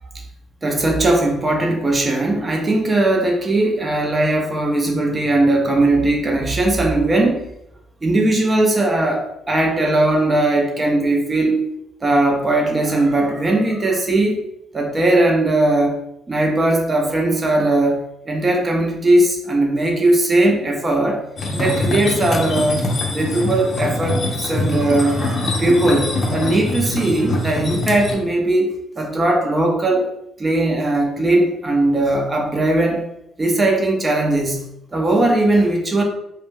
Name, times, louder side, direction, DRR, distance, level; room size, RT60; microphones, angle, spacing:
voice 1, 0.6-7.5 8.0-11.6 12.0-14.4 14.7-16.0 16.3-21.2 21.5-30.1 30.4-33.0 33.4-34.6 34.9-36.0, right 2 dB, 30° right, 1 dB, 0.6 m, -18 dB
sound 1, 21.4-28.1, left 2 dB, 55° left, 0.6 m, -23 dB
2.3 x 2.2 x 3.2 m, 0.80 s
hypercardioid pair, 55°, 0 cm